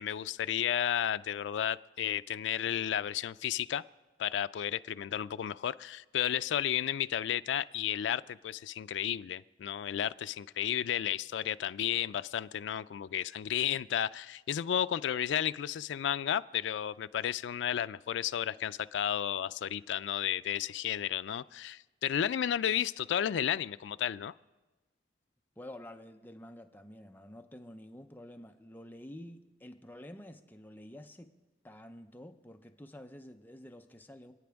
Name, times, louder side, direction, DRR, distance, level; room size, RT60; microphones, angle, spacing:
voice 1, 0.0-3.8 4.2-24.3, left 10 dB, 80° left, 13 dB, 0.3 m, -33 dB
voice 2, 25.6-31.3 31.6-34.3, left 1 dB, 10° left, 6 dB, 0.6 m, -49 dB
28.0 x 9.3 x 3.5 m, 1.2 s
head